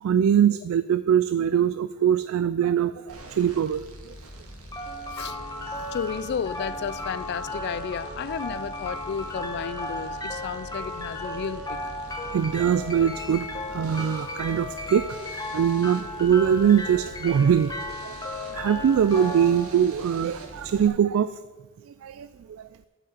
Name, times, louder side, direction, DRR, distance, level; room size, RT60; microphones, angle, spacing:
voice 1, 0.0-3.8 4.1-4.2 12.3-15.1 15.3-17.7 18.0-18.1 18.5-21.3 22.0-22.7, right 8 dB, 65° right, 0.3 m, -22 dB
sound 1, 3.1-20.9, right 1 dB, 85° right, 1.8 m, -44 dB
sound 2, 4.7-20.7, left 1 dB, 15° left, 1.0 m, -35 dB
voice 2, 5.0-5.4 5.8-11.9, left 7 dB, 50° left, 0.3 m, -33 dB
7.9 x 6.0 x 7.7 m
head